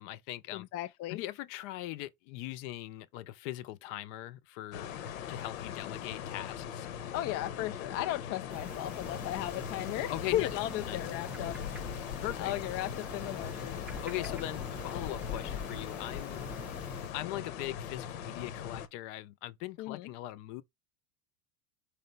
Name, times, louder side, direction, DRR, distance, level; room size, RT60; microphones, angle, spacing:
voice 1, 0.0-0.7 1.1-4.9 5.3-6.9 10.1-10.5 10.9-11.0 12.2-12.5 14.0-16.5 17.1-20.6, left 15 dB, 60° left, 0.9 m, -40 dB
voice 2, 0.5-1.2 7.1-11.9 12.4-13.9 14.2-14.4 19.8-20.1, left 14 dB, 40° left, 0.5 m, -36 dB
sound 1, 4.7-18.9, left 9 dB, 80° left, 1.2 m, -40 dB
sound 2, 8.5-17.1, right 2 dB, 5° right, 0.6 m, -47 dB
5.1 x 3.4 x 5.4 m
supercardioid pair, 120°, 41 cm